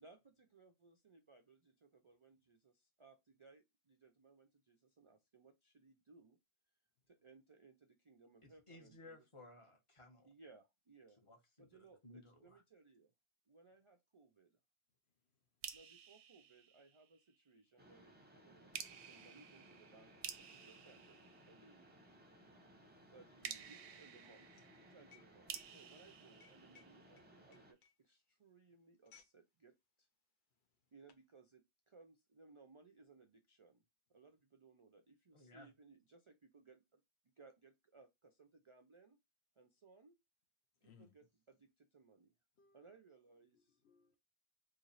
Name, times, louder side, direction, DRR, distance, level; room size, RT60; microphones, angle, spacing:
voice 1, 0.0-6.4 7.1-9.3 10.2-11.2 11.6-13.1 13.5-14.6 15.7-21.9 23.1-30.1 30.9-33.8 34.1-39.2 39.6-40.2 40.8-42.3 42.7-43.8, right 4 dB, 50° right, 0.4 m, -64 dB
voice 2, 8.4-10.3 11.2-11.7 12.0-12.6 35.3-35.7, left 2 dB, 30° left, 1.0 m, -59 dB
voice 3, 15.1-15.8 22.7-23.1 30.5-30.9 40.8-41.2 42.6-43.0 43.5-44.2, left 6 dB, 80° left, 1.0 m, -70 dB
sound 1, 15.6-17.4 18.7-22.1 23.4-27.3, right 8 dB, 90° right, 0.9 m, -52 dB
Mechanisms, 17.8-27.7, equal, 10° right, 0.7 m, -63 dB
sound 2, 20.2-29.4 29.7-30.0 30.6-31.3, left 8 dB, 55° left, 0.7 m, -70 dB
3.1 x 2.4 x 3.9 m
omnidirectional pair, 1.1 m